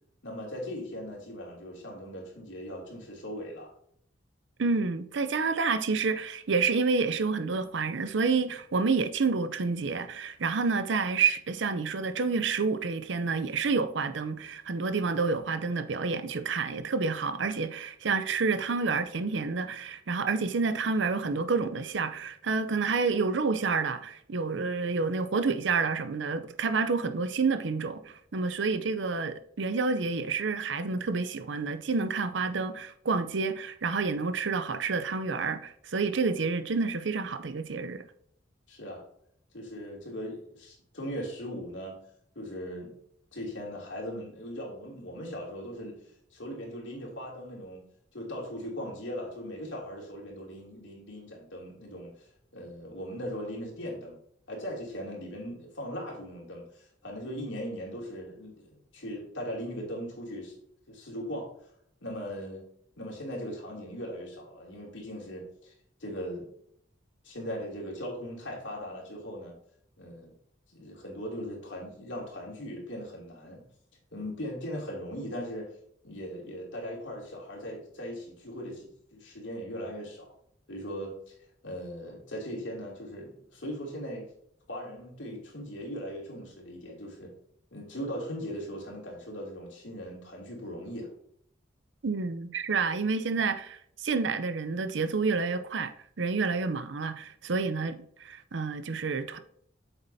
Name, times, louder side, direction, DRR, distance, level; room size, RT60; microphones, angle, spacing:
voice 1, 0.2-3.7 38.7-39.0 39.5-42.0 42.3-42.9 43.3-46.0 46.3-47.9 48.1-54.2 54.5-60.5 60.9-61.5 62.0-62.6 63.0-65.7 66.0-66.4 67.2-69.5 70.0-70.3 70.7-73.6 74.1-75.7 76.0-80.3 80.7-81.3 81.6-84.3 84.7-87.3 87.7-91.1, equal, 80° left, 2.8 m, -39 dB
voice 2, 4.6-38.0 92.0-95.9 96.2-99.4, right 4 dB, 70° right, 0.6 m, -29 dB
8.2 x 6.7 x 2.7 m
head